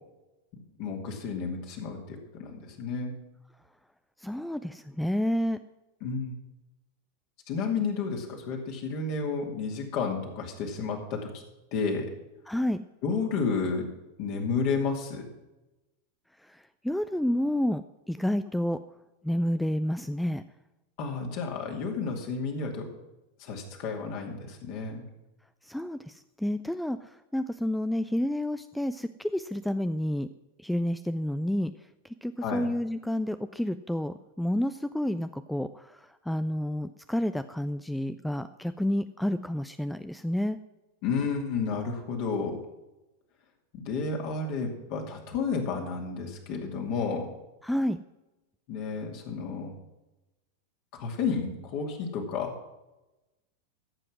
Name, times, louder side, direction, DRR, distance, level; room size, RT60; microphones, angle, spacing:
voice 1, 0.8-3.1 6.0-6.3 7.5-11.3 11.7-12.1 13.0-13.8 14.2-15.3 21.0-22.8 23.4-25.0 32.4-32.6 41.0-42.6 43.7-47.3 48.7-49.7 51.0-52.5, left 5 dB, 45° left, 1 dB, 2.6 m, -31 dB
voice 2, 4.2-5.6 12.5-12.8 16.4-17.8 18.1-18.8 19.2-20.4 25.6-30.3 30.6-31.7 32.2-40.6 47.6-48.0, left 1 dB, 5° left, 12 dB, 0.4 m, -30 dB
14.5 x 7.7 x 6.0 m, 1.0 s
figure-of-eight pair, 90°, 0 cm